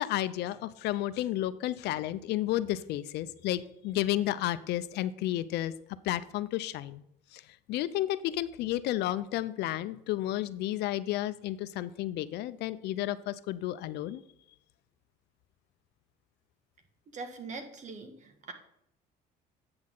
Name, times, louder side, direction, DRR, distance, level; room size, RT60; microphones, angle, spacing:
voice 1, 0.0-5.7 6.0-7.0 7.3-14.2, left 14 dB, 80° left, 14 dB, 0.5 m, -32 dB
voice 2, 17.1-18.5, right 3 dB, 45° right, 6 dB, 1.5 m, -42 dB
8.5 x 6.3 x 3.8 m, 0.78 s
cardioid pair, 110°, 17 cm